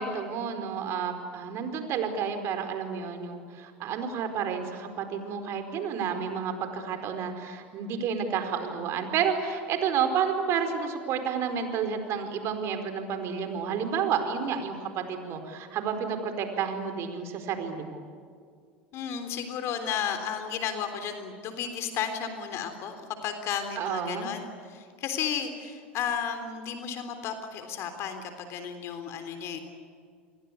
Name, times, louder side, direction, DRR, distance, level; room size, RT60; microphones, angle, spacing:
voice 1, 0.0-18.0 23.8-24.3, right 7 dB, 50° right, 7 dB, 4.5 m, -30 dB
voice 2, 18.9-29.6, left 7 dB, 50° left, 7 dB, 3.6 m, -33 dB
29.0 x 23.0 x 8.5 m, 2.2 s
hypercardioid pair, 80°, 6 cm